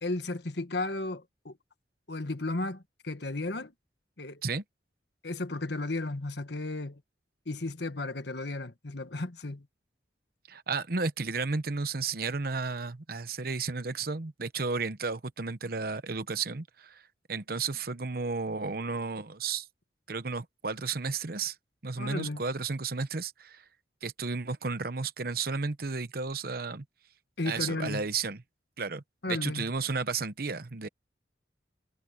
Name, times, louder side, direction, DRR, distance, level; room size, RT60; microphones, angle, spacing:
voice 1, 0.0-1.6 2.1-3.7 4.2-4.4 5.2-7.0 7.4-9.7 22.0-22.4 27.4-28.0 29.2-29.7, left 2 dB, 70° left, 1.6 m, -34 dB
voice 2, 10.5-17.0 17.3-19.7 20.1-21.6 21.8-23.6 24.0-26.8 27.4-28.4 28.8-30.9, right 4 dB, 55° right, 1.0 m, -33 dB
head